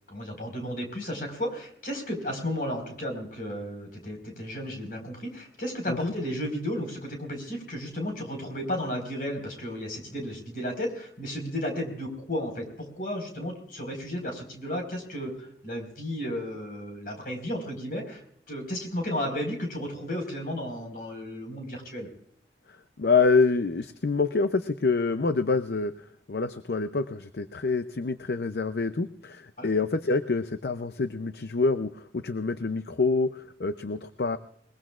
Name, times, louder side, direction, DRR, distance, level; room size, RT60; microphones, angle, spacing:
voice 1, 0.1-18.2 18.5-22.1 29.6-29.7, equal, 50° left, 3 dB, 4.7 m, -33 dB
voice 2, 23.0-25.9 26.3-34.4, left 4 dB, 65° left, 11 dB, 0.6 m, -26 dB
22.0 x 21.0 x 2.4 m, 0.67 s
head